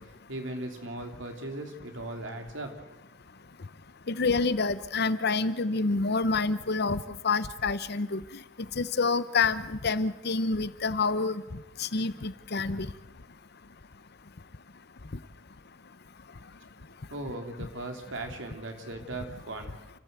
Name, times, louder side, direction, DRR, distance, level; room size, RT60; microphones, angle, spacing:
voice 1, 0.0-2.7 17.1-19.7, right 2 dB, 70° right, 4 dB, 3.2 m, -38 dB
voice 2, 4.1-8.2 8.8-11.4 11.8-12.9, left 4 dB, 55° left, 14 dB, 0.9 m, -27 dB
29.5 x 14.5 x 8.2 m, 1.1 s
head